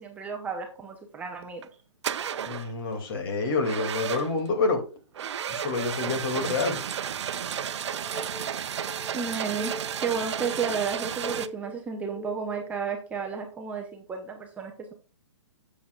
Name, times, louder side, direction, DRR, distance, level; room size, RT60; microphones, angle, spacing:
voice 1, 0.0-1.6 9.1-9.7 10.0-14.9, right 6 dB, 10° right, 0.6 m, -32 dB
sound 1, 1.4-1.7 2.0-2.7 3.6-4.5 5.1-11.5, right 8 dB, 60° right, 0.7 m, -32 dB
voice 2, 2.4-4.8 5.5-6.8, left 3 dB, 45° left, 2.6 m, -28 dB
sound 2, 7.9-12.7, left 2 dB, 85° left, 3.5 m, -42 dB
9.9 x 7.2 x 2.4 m
hypercardioid pair, 155°, 16 cm